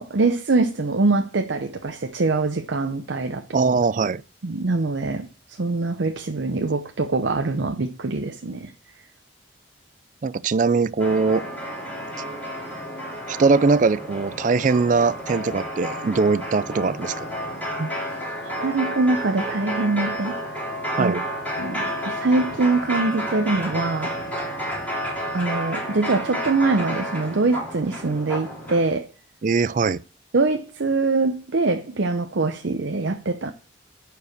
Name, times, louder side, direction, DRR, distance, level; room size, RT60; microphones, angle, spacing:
voice 1, 0.0-3.4 4.4-5.3 5.6-8.7 18.4-20.4 20.9-21.2 21.6-24.1 25.3-29.1 30.3-33.5, right 3 dB, 70° right, 0.7 m, -23 dB
voice 2, 3.5-4.2 10.2-11.5 13.3-17.3 17.8-17.9 21.0-21.2 29.4-30.0, right 4 dB, 40° right, 0.3 m, -21 dB
sound 1, 11.0-28.8, equal, 10° left, 3.3 m, -31 dB
10.5 x 4.8 x 6.6 m
head